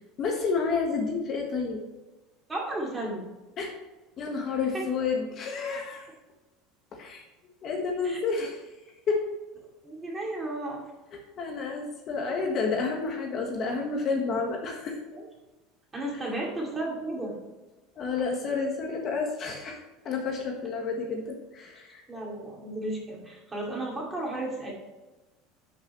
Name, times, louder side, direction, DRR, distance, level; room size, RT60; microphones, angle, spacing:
voice 1, 0.2-1.8 3.6-3.8 4.2-6.1 6.9-7.2 7.6-8.6 9.1-9.3 11.1-15.0 18.0-22.0, left 4 dB, 35° left, 1 dB, 1.4 m, -30 dB
voice 2, 2.5-3.3 4.7-4.8 8.0-8.2 9.8-10.8 15.1-15.2 15.9-17.4 22.1-24.7, right 1 dB, 15° right, -2 dB, 2.6 m, -34 dB
12.5 x 6.0 x 3.1 m, 1.1 s
supercardioid pair, 150°, 0 cm